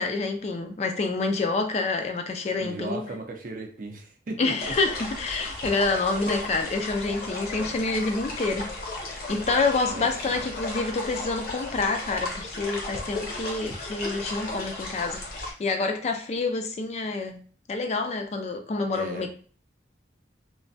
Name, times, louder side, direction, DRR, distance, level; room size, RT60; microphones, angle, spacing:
voice 1, 0.0-3.0 4.4-8.7 9.3-17.4 17.7-19.3, left 3 dB, 35° left, 6 dB, 0.3 m, -27 dB
voice 2, 2.6-4.7 7.6-7.8 9.9-10.4 18.9-19.3, right 2 dB, 50° right, 3 dB, 0.5 m, -37 dB
sound 1, 4.6-15.5, left 2 dB, 55° left, 0.8 m, -35 dB
3.1 x 2.1 x 2.6 m, 0.42 s
head